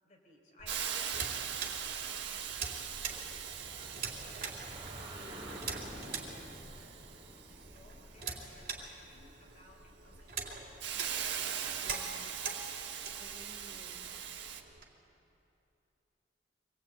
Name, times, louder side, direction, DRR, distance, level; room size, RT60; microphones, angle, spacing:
voice 1, 0.0-4.6 5.2-5.9 6.1-6.6 7.4-10.6, left 1 dB, 40° left, 1 dB, 4.2 m, -60 dB
sound 1, 0.6-14.8, right 5 dB, 50° right, 3.4 m, -44 dB
Hiss, 0.7-14.6, right 8 dB, 75° right, 1.8 m, -41 dB
sound 2, 2.8-9.3, right 1 dB, 30° right, 4.1 m, -50 dB
voice 2, 5.2-5.9 11.8-12.2 13.2-14.0, equal, 25° left, 0 dB, 2.6 m, -56 dB
25.5 x 20.0 x 9.3 m, 2.9 s
head